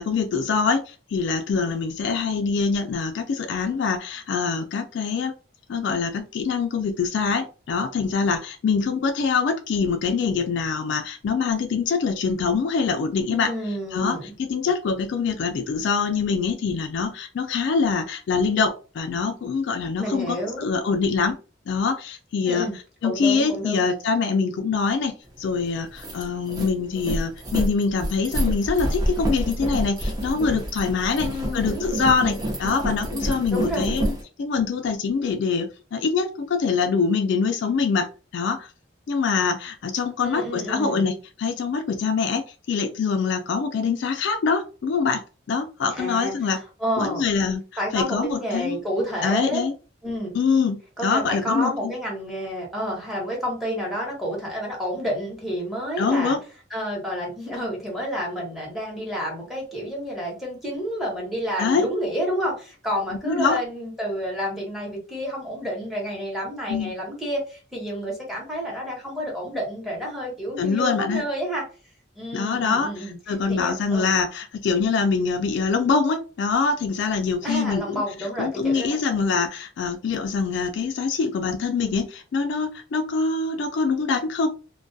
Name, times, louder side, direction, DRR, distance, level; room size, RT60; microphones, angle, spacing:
voice 1, 0.0-5.3 5.7-13.5 13.9-21.4 21.7-22.7 23.0-31.3 31.5-34.1 34.4-38.1 38.3-38.7 39.1-41.1 41.4-45.2 45.5-46.6 47.0-47.6 47.9-48.8 49.2-49.7 50.3-51.9 56.0-56.4 61.6-61.9 63.3-63.6 66.7-66.9 70.6-71.2 72.3-78.0 78.4-84.5, left 5 dB, 65° left, 5 dB, 0.3 m, -24 dB
voice 2, 13.3-14.3 20.0-20.7 22.5-22.8 23.0-23.9 31.2-31.8 33.5-33.9 40.2-41.1 45.9-46.3 46.8-47.5 47.8-49.6 50.0-50.3 51.0-56.4 56.7-71.6 72.2-73.2 73.5-74.1 77.4-78.9, equal, ahead, -2 dB, 0.9 m, -29 dB
sound 1, 25.4-25.5 25.8-34.2, equal, 20° right, 0.7 m, -28 dB
2.2 x 2.2 x 2.6 m, 0.35 s
head